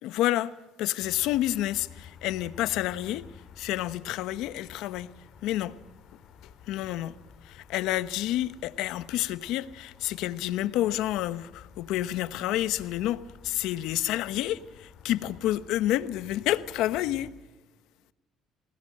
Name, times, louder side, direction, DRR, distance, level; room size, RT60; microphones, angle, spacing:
voice 1, 0.0-3.3 3.6-5.1 5.4-5.8 6.4-7.1 7.4-17.3, left 14 dB, 80° left, 1.0 m, -29 dB
sound 1, 1.0-17.3, left 7 dB, 55° left, 3.5 m, -52 dB
27.0 x 19.5 x 6.5 m
cardioid pair, 105°, 0 cm